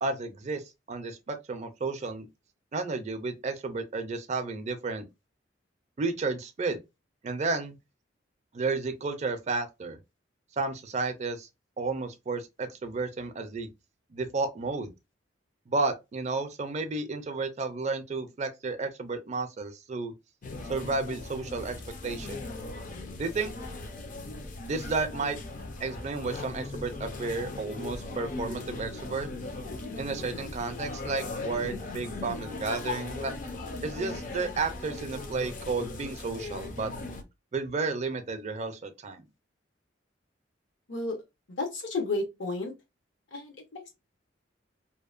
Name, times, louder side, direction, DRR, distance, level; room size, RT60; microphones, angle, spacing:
voice 1, 0.0-0.6 0.9-2.3 2.7-5.0 6.0-6.8 7.2-7.8 8.5-10.0 10.6-11.5 11.8-13.7 14.1-14.9 15.7-20.1 20.7-21.8 22.0-22.5 23.2-23.5 24.7-25.4 25.8-29.3 30.0-33.3 33.8-36.9 37.5-39.2, right 3 dB, 35° right, 0.4 m, -32 dB
sound 1, 20.4-37.2, left 3 dB, 45° left, 0.5 m, -38 dB
voice 2, 41.6-42.7 43.3-43.9, left 2 dB, 75° left, 0.9 m, -32 dB
2.7 x 2.1 x 2.3 m
head